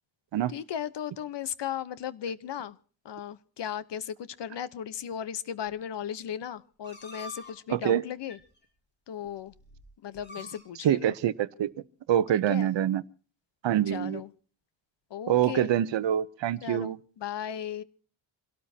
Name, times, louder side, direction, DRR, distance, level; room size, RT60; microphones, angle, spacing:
voice 1, 0.5-2.8 3.0-8.4 9.1-9.5 10.0-11.1 12.3-12.7 13.9-14.3 15.1-15.7 16.6-17.8, left 9 dB, 60° left, 1.0 m, -36 dB
sound 1, 6.8-7.5 8.3-8.4 9.3-9.4 9.6-9.8 10.1-10.6, left 1 dB, 20° left, 6.1 m, -44 dB
voice 2, 7.7-8.0 10.8-11.7 12.1-13.0 13.6-14.2 15.3-17.0, right 11 dB, 65° right, 0.8 m, -25 dB
26.5 x 17.5 x 2.8 m
wide cardioid pair, 165°, 47 cm